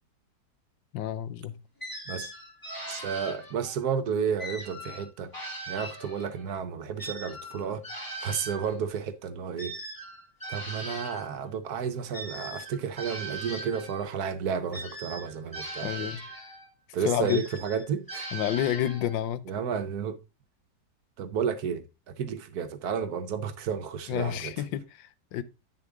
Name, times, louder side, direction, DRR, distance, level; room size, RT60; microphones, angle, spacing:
voice 1, 0.9-1.6 15.8-16.2 17.0-17.4 18.3-19.5 24.1-25.4, left 11 dB, 85° left, 1.4 m, -29 dB
sound 1, 1.8-3.8 4.4-6.5 7.0-11.3 12.1-14.1 14.7-16.7 17.3-19.2, right 2 dB, 10° left, 1.9 m, -40 dB
voice 2, 2.9-5.3 5.7-7.8 8.2-9.8 10.5-16.1 16.9-18.3 19.5-20.2 21.2-24.5, right 7 dB, 65° right, 1.1 m, -32 dB
9.3 x 6.7 x 3.5 m
omnidirectional pair, 2.0 m